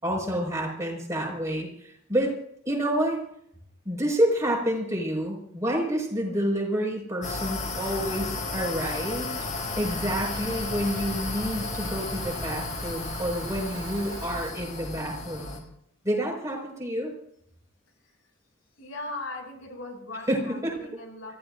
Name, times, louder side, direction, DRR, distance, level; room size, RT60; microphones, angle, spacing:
voice 1, 0.0-2.3 2.7-3.2 3.8-9.5 9.8-15.6 16.0-17.1 20.3-20.7, equal, 15° right, 0 dB, 5.6 m, -28 dB
sound 1, 7.2-15.6, left 3 dB, 40° left, 4.1 m, -33 dB
Rain, 9.5-14.5, right 3 dB, 85° right, 2.8 m, -43 dB
voice 2, 18.8-21.4, left 2 dB, 75° left, 1 dB, 7.0 m, -39 dB
29.5 x 15.5 x 2.7 m, 0.70 s
head